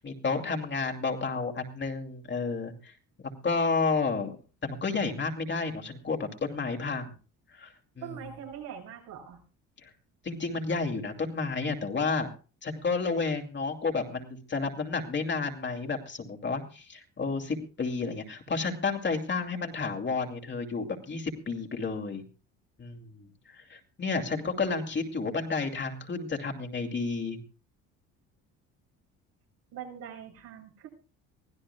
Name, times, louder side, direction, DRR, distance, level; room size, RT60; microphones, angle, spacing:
voice 1, 0.0-2.9 3.4-4.4 4.6-7.1 7.5-8.2 9.8-9.9 10.2-12.3 12.6-22.2 22.8-27.4, left 4 dB, 35° left, 3 dB, 2.6 m, -31 dB
voice 2, 8.0-9.4 29.7-30.9, right 8 dB, 80° right, 0 dB, 7.3 m, -42 dB
24.0 x 16.0 x 2.3 m, 0.35 s
cardioid pair, 95°, 33 cm